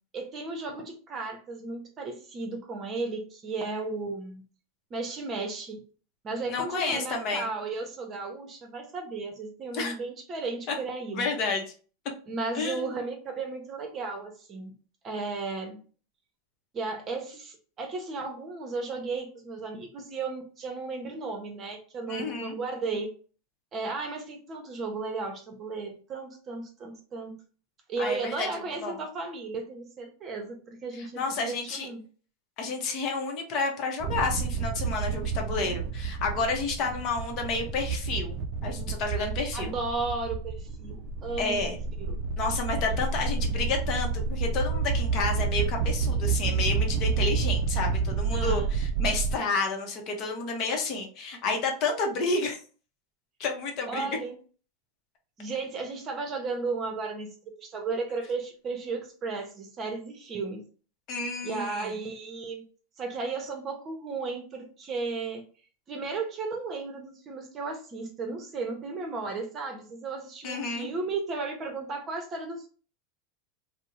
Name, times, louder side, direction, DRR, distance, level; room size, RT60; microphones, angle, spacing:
voice 1, 0.1-4.4 4.9-5.8 6.2-11.4 12.3-14.7 15.0-15.8 16.7-23.1 23.7-27.4 27.9-32.0 39.5-42.2 48.3-48.7 53.9-54.4 55.4-57.3 57.6-60.7 61.4-62.6 63.0-65.4 65.9-72.7, right 3 dB, 30° right, 3 dB, 0.7 m, -34 dB
voice 2, 6.5-7.5 9.7-9.9 10.7-10.8 11.1-11.6 12.5-12.9 22.1-22.6 28.0-28.5 28.8-29.0 30.9-31.9 32.6-39.7 41.4-41.8 42.4-52.6 53.4-54.1 61.1-62.0 70.4-70.9, left 3 dB, 50° left, 2 dB, 0.7 m, -30 dB
sound 1, 34.0-49.4, right 5 dB, 50° right, 0.3 m, -29 dB
2.5 x 2.0 x 2.9 m, 0.40 s
supercardioid pair, 120°, 0 cm